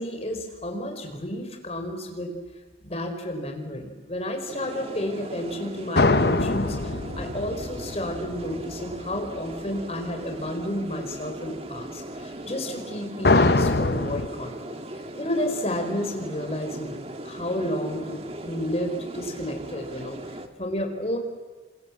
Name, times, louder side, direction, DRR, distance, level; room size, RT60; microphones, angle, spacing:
voice 1, 0.0-2.3 2.8-21.2, left 1 dB, 35° left, 4 dB, 4.8 m, -31 dB
sound 1, 4.5-20.5, right 1 dB, 35° right, 1.8 m, -38 dB
sound 2, 6.0-9.0 13.2-14.3, left 3 dB, 60° left, 1.0 m, -23 dB
29.5 x 26.5 x 7.4 m, 1.3 s
head